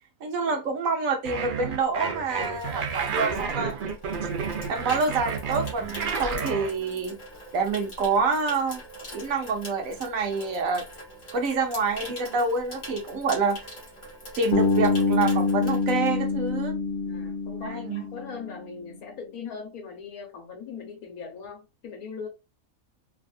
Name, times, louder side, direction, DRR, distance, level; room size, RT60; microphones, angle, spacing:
voice 1, 0.2-4.0 4.7-7.2 7.5-8.8 9.1-10.8 11.3-13.6 14.4-16.7 17.6-18.0, right 4 dB, 70° right, 1.1 m, -27 dB
sound 1, 1.2-6.7, right 5 dB, 55° right, 0.6 m, -31 dB
Water tap faucet / Sink (filling or washing), 1.9-16.7 17.0-17.3, equal, 35° left, 1.1 m, -43 dB
Bass guitar, 14.5-18.6, left 4 dB, 55° left, 0.6 m, -25 dB
voice 2, 17.0-22.3, left 5 dB, 80° left, 1.5 m, -40 dB
3.5 x 2.4 x 2.3 m
omnidirectional pair, 1.5 m